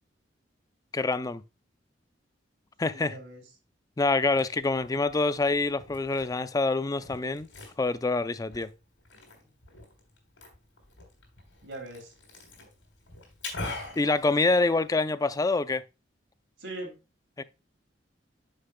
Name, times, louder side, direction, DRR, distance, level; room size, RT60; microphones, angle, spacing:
voice 1, 0.9-1.4 2.8-3.2 4.0-7.5 7.8-8.7 14.0-15.8 17.4-17.5, left 3 dB, 20° left, 0.4 m, -26 dB
voice 2, 2.8-3.5 9.4-9.5 11.6-12.1 16.6-17.0, right 1 dB, 75° right, 3.0 m, -41 dB
Liquid, 4.1-15.1, left 2 dB, 90° left, 3.5 m, -45 dB
9.5 x 6.6 x 2.2 m
head